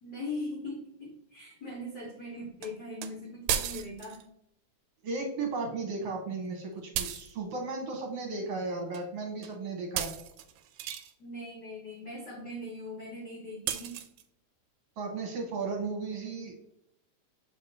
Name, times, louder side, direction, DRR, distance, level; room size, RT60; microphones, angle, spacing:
voice 1, 0.0-4.2 11.2-14.0 16.1-16.6, left 1 dB, 55° left, -3 dB, 1.2 m, -40 dB
sound 1, 2.6-2.7 3.0-3.1 3.5-4.2 7.0-7.3 8.9-9.1 9.4-9.6 10.0-11.1 13.7-14.2, right 9 dB, 80° right, 1.8 m, -34 dB
voice 2, 5.0-10.1 15.0-16.6, right 3 dB, 65° right, 1 dB, 1.9 m, -35 dB
7.1 x 5.0 x 2.8 m, 0.79 s
omnidirectional pair, 3.4 m